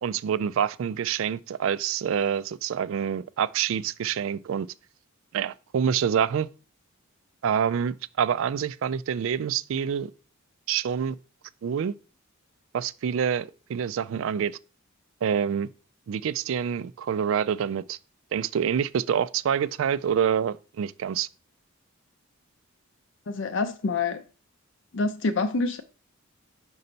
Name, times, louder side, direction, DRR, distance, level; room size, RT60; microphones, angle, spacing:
voice 1, 0.0-4.7 5.3-6.5 7.4-10.1 10.7-11.2 11.6-11.9 12.7-14.6 15.2-15.7 16.1-18.0 18.3-21.3, right 8 dB, 65° right, 0.3 m, -26 dB
voice 2, 23.3-24.2 24.9-25.8, left 3 dB, 55° left, 0.4 m, -26 dB
5.4 x 5.3 x 4.0 m
head